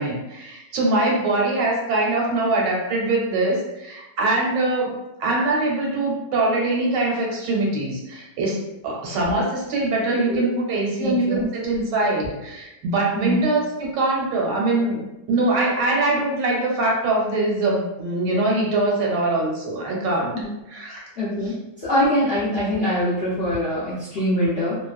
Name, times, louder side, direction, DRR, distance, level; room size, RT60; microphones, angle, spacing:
voice 1, 0.0-15.0 15.3-20.3 20.7-21.0 21.4-21.5, right 2 dB, 80° right, -3 dB, 1.3 m, -23 dB
voice 2, 11.0-11.5 13.1-13.4 20.3-20.5 21.2-21.6 21.8-24.8, equal, 55° left, -9 dB, 0.6 m, -23 dB
3.0 x 2.0 x 2.4 m, 0.95 s
omnidirectional pair, 1.9 m